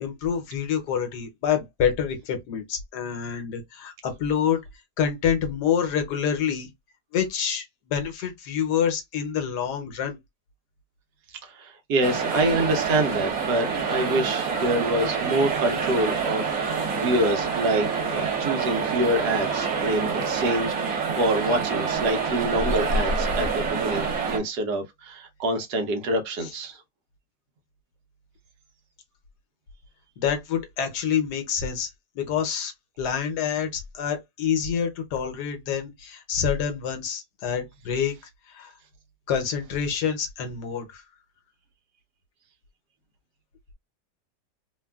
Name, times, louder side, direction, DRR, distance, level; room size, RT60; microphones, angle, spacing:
voice 1, 0.0-4.6 5.0-6.7 7.1-10.2 30.2-31.9 32.2-38.2 38.5-38.7 39.3-41.0, left 8 dB, 75° left, 1.3 m, -27 dB
voice 2, 11.4-26.8, right 1 dB, 75° right, 1.3 m, -26 dB
sound 1, 12.0-24.4, right 5 dB, 55° right, 1.2 m, -27 dB
3.3 x 2.2 x 2.2 m
omnidirectional pair, 1.8 m